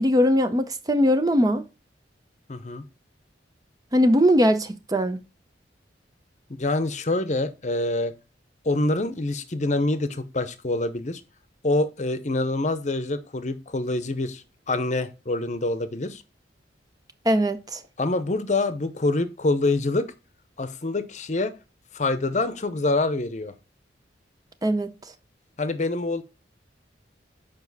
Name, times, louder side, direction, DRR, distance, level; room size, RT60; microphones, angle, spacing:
voice 1, 0.0-1.6 3.9-5.2 17.3-17.8 24.6-24.9, equal, 20° right, 0.6 m, -20 dB
voice 2, 2.5-2.8 6.5-8.1 8.6-11.2 11.6-16.2 18.0-20.1 20.6-21.5 21.9-23.5 25.6-26.2, left 2 dB, 40° left, 0.8 m, -26 dB
7.2 x 5.2 x 4.0 m
head